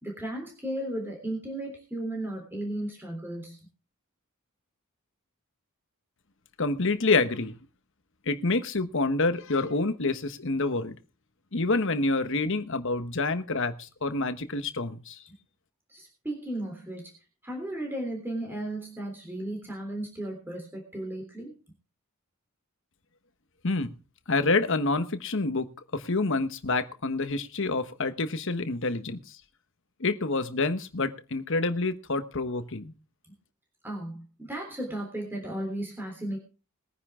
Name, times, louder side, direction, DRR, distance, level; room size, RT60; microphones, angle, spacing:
voice 1, 0.0-3.6 15.9-17.1 17.4-21.6 33.8-36.4, right 1 dB, 10° right, 1 dB, 3.4 m, -35 dB
voice 2, 6.6-7.6 8.3-10.9 11.5-15.2 23.6-23.9 24.3-29.4 30.0-32.9, left 3 dB, 60° left, 10 dB, 1.2 m, -27 dB
21.0 x 9.9 x 3.7 m, 0.35 s
head